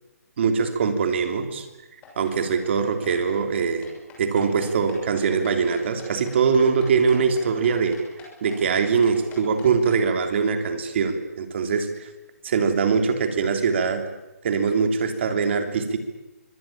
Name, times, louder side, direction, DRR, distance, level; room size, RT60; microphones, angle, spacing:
voice 1, 0.4-1.7 2.2-3.9 4.2-8.0 8.4-12.1 12.4-14.0 14.4-16.0, right 5 dB, 45° right, 6 dB, 3.3 m, -22 dB
sound 1, 2.0-10.0, left 5 dB, 15° left, 6.6 m, -45 dB
24.5 x 18.0 x 8.8 m, 1.1 s
hypercardioid pair, 160°, 9 cm